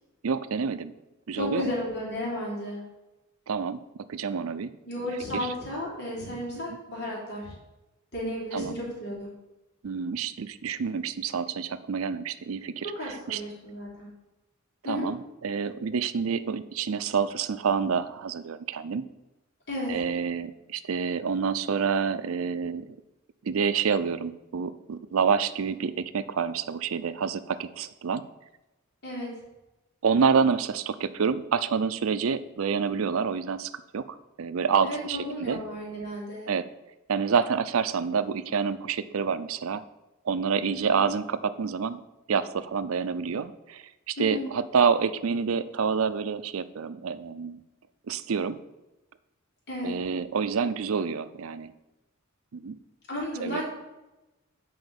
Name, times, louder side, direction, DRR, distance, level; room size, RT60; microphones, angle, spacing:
voice 1, 0.2-0.9 1.3-1.7 3.5-3.8 4.1-4.7 5.3-5.5 6.6-6.8 8.5-8.8 9.8-13.4 14.8-19.0 19.9-22.9 23.4-28.2 30.0-35.6 36.5-36.7 37.1-39.8 40.2-42.0 42.3-47.6 48.1-48.6 49.8-51.7 52.5-52.8 53.4-53.6, right 6 dB, 85° right, 14 dB, 0.5 m, -28 dB
voice 2, 1.3-2.8 4.9-7.5 8.1-9.3 13.0-14.1 14.8-15.1 19.7-19.9 29.0-29.3 34.8-36.5 40.6-40.9 44.2-44.4 49.7-49.9 53.1-53.6, left 1 dB, 55° left, -4 dB, 3.6 m, -33 dB
7.7 x 5.0 x 7.0 m, 1.0 s
head